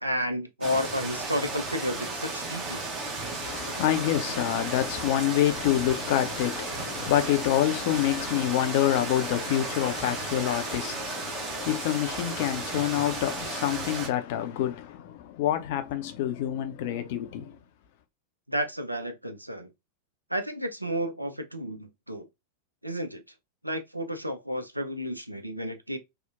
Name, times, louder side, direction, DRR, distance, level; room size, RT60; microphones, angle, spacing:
voice 1, 0.0-2.8 18.5-19.7 20.3-22.3 22.8-23.2 23.6-26.0, equal, 85° right, 0.4 m, -31 dB
sound 1, 0.6-14.1, right 3 dB, 25° right, 0.8 m, -34 dB
voice 2, 3.4-17.6, left 12 dB, 50° left, 0.4 m, -27 dB
2.8 x 2.0 x 2.4 m
figure-of-eight pair, 90°, 0 cm